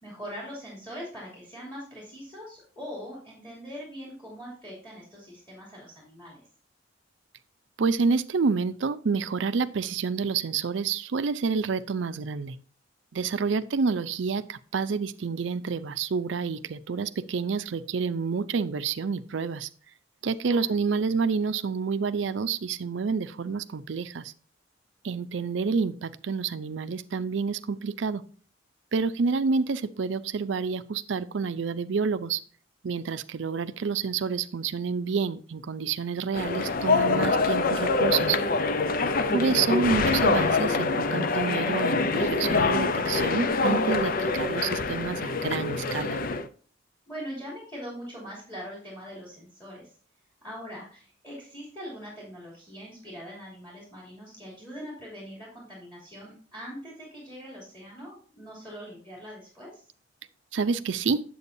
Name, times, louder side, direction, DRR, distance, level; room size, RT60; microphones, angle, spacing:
voice 1, 0.0-6.4 13.2-13.4 20.5-20.7 38.3-38.7 39.0-39.5 47.1-49.9 50.4-59.9, equal, 10° left, -4 dB, 2.9 m, -42 dB
voice 2, 7.8-12.6 13.1-19.7 20.2-24.3 25.0-28.2 28.9-32.4 32.8-38.4 39.3-46.2 60.5-61.2, right 5 dB, 75° right, 12 dB, 0.5 m, -28 dB
sound 1, 36.3-46.5, left 3 dB, 50° left, 0.5 m, -25 dB
8.2 x 7.7 x 2.6 m, 0.43 s
head